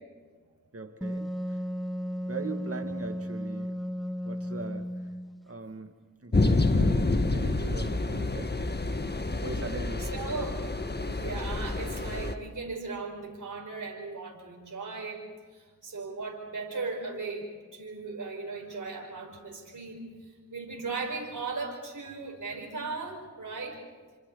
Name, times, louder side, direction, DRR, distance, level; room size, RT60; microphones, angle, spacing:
voice 1, 0.7-1.6 2.3-3.8 4.2-4.9 5.4-5.9 6.2-8.6 9.4-10.1, right 3 dB, 40° right, 6 dB, 2.4 m, -40 dB
Wind instrument woodwind instrument, 1.0-5.4, equal, ahead, 1.0 m, -34 dB
sound 1, 6.3-12.3, left 2 dB, 30° left, 1.7 m, -28 dB
voice 2, 10.0-10.6 10.9-15.3 15.5-20.0 20.5-23.8, right 4 dB, 60° right, 0 dB, 5.4 m, -37 dB
28.0 x 26.5 x 4.2 m, 1.5 s
cardioid pair, 40°, 34 cm